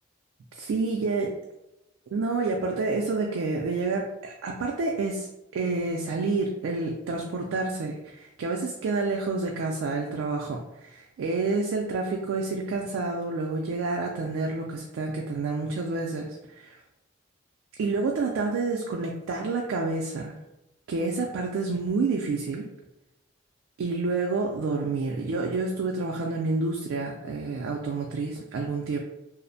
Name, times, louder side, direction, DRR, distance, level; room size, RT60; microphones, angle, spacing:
voice 1, 0.6-1.3 2.1-16.8 17.8-20.4 20.9-22.7 23.8-29.0, right 3 dB, 80° right, 0 dB, 0.3 m, -29 dB
2.5 x 2.0 x 2.6 m, 0.93 s
head